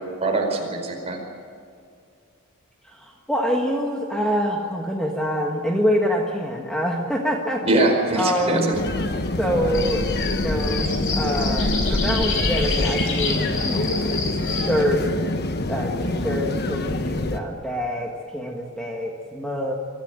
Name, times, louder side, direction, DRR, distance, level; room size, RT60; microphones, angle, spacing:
voice 1, 0.2-1.2 7.6-8.7, right 2 dB, 30° right, 1 dB, 4.7 m, -22 dB
voice 2, 2.8-7.6 8.1-8.7 9.4-15.0 15.7-19.7, equal, 5° left, 0 dB, 1.6 m, -26 dB
sound 1, 8.7-17.4, left 2 dB, 50° left, 1.2 m, -25 dB
sound 2, 9.7-14.8, left 5 dB, 65° left, 4.9 m, -29 dB
24.0 x 14.5 x 9.0 m, 2.3 s
head